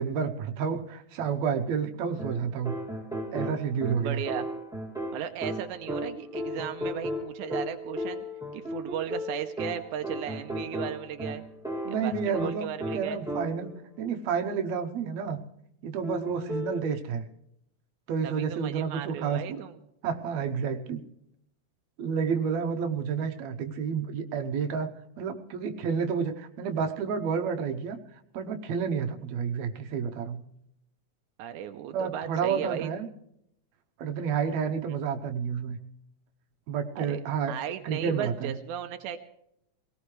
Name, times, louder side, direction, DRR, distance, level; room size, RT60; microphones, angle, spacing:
voice 1, 0.0-2.8 3.3-4.2 11.8-12.7 12.9-15.4 15.8-17.3 18.1-19.6 20.0-21.1 22.0-24.9 25.2-28.0 28.3-30.4 31.9-33.1 34.0-35.8 36.7-37.5 37.8-38.5, right 6 dB, 70° right, 5 dB, 2.2 m, -30 dB
sound 1, 2.2-13.8 16.0-16.9, equal, ahead, 1.8 m, -35 dB
voice 2, 4.0-4.5 5.1-8.2 8.5-11.4 11.9-13.2 18.2-19.8 31.4-32.9 34.9-35.0 37.0-37.2 37.5-39.2, right 9 dB, 85° right, 6 dB, 2.2 m, -36 dB
22.5 x 18.0 x 3.3 m, 0.77 s
omnidirectional pair, 3.4 m